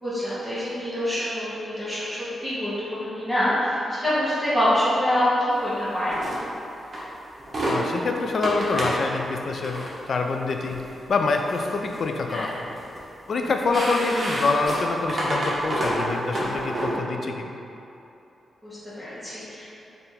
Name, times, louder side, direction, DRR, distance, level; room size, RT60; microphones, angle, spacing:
voice 1, 0.0-6.2 12.3-12.5 18.6-19.7, equal, 5° left, -12 dB, 1.0 m, -25 dB
sound 1, 6.1-6.4 6.9-7.0 7.4-7.8 8.4-9.0 9.6-9.9 10.6-10.8 11.3-12.0 12.3-13.0 13.4-16.9, right 1 dB, 40° right, 0.9 m, -28 dB
voice 2, 7.6-10.8 11.1-12.7 13.3-17.5, left 3 dB, 55° left, 3 dB, 0.3 m, -26 dB
3.5 x 2.5 x 4.4 m, 2.9 s
cardioid pair, 100°, 0 cm